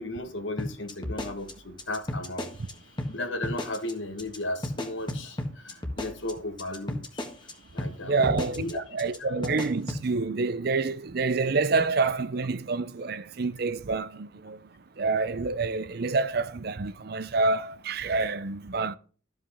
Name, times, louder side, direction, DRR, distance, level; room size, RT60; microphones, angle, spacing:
voice 1, 0.0-2.5 3.1-7.3 7.7-8.8 9.2-9.4, left 2 dB, 70° left, 1.4 m, -35 dB
sound 1, 0.6-2.7 3.0-3.1 3.4-3.9 4.2-4.4 4.6-7.5 7.8-7.9 8.2-8.7 9.0-9.2 9.4-10.0, left 1 dB, 25° left, 1.5 m, -33 dB
voice 2, 8.0-14.7 15.0-19.0, right 4 dB, 50° right, 0.6 m, -27 dB
13.5 x 5.3 x 3.5 m
head